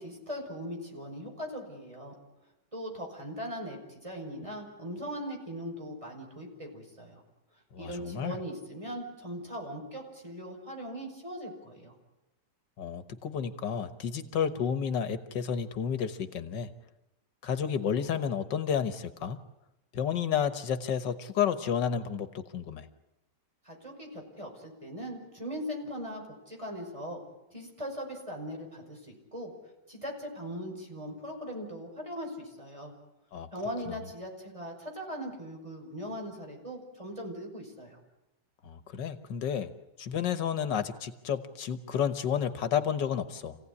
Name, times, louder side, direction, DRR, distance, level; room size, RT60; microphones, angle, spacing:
voice 1, 0.0-2.1 2.7-7.2 7.8-11.9 23.6-27.2 27.5-29.5 29.9-32.9 33.5-38.0, equal, 15° right, 1 dB, 5.7 m, -40 dB
voice 2, 7.7-8.4 12.8-16.7 17.4-19.4 19.9-22.9 33.3-33.5 33.9-34.0 38.6-39.7 40.0-43.6, left 8 dB, 85° left, 11 dB, 1.8 m, -31 dB
27.5 x 17.0 x 9.8 m, 0.94 s
omnidirectional pair, 1.9 m